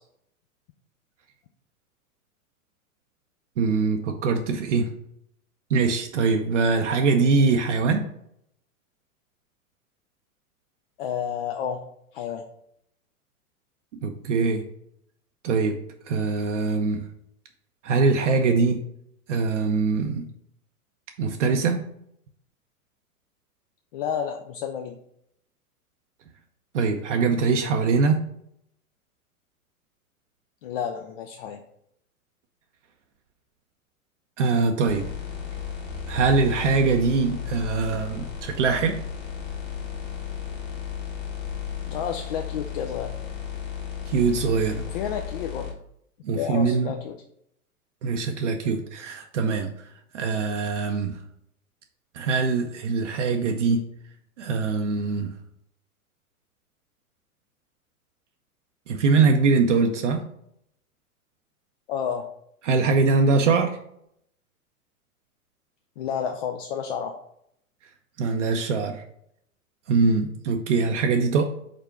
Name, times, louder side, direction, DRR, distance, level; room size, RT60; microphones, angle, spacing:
voice 1, 3.6-4.9 5.7-8.0 14.0-14.6 15.4-15.8 16.1-17.0 17.8-18.8 19.3-20.2 21.2-21.8 26.7-28.2 34.4-35.1 36.1-39.0 44.1-44.8 46.2-46.9 48.0-49.7 50.1-51.2 52.1-53.8 54.4-55.3 58.9-60.2 62.7-63.8 68.2-69.0 69.9-71.4, right 4 dB, 55° right, 4 dB, 0.7 m, -22 dB
voice 2, 11.0-11.8 12.1-12.4 23.9-25.0 30.6-31.6 41.8-43.1 44.9-45.7 46.3-47.2 61.9-62.3 66.0-67.1, left 8 dB, 40° left, 3 dB, 0.5 m, -30 dB
sound 1, 34.9-45.7, left 8 dB, 20° left, 1.3 m, -34 dB
5.1 x 4.2 x 4.6 m, 0.73 s
figure-of-eight pair, 100°, 44 cm